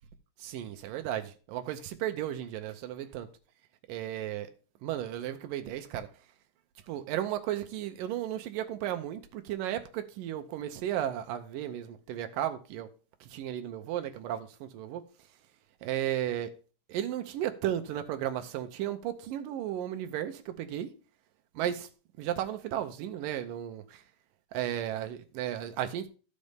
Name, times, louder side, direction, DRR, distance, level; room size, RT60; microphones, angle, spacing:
voice 1, 0.4-3.3 3.9-4.5 4.8-6.1 6.9-12.9 13.2-15.0 15.8-16.5 16.9-20.9 21.6-21.9 22.2-24.0 24.5-26.1, right 11 dB, 75° right, 2.2 m, -34 dB
15.0 x 5.3 x 3.4 m
omnidirectional pair, 4.5 m